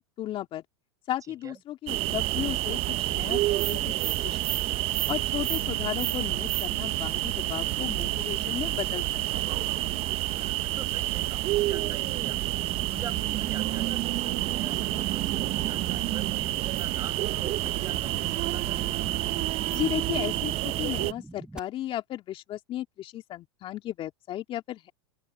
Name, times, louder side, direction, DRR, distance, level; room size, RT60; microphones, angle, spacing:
voice 1, 0.2-0.6 1.1-4.7 5.1-9.0 9.3-9.5 19.7-24.9, left 13 dB, 40° left, 2.4 m, -35 dB
voice 2, 1.3-1.6 10.3-18.9, right 7 dB, 25° right, 6.3 m, -46 dB
sound 1, 1.9-21.1, right 16 dB, 45° right, 1.0 m, -29 dB
sound 2, 5.5-19.5, right 10 dB, 85° right, 2.4 m, -42 dB
sound 3, 11.6-21.6, right 2 dB, 5° right, 2.0 m, -46 dB
hypercardioid pair, 100°, 14 cm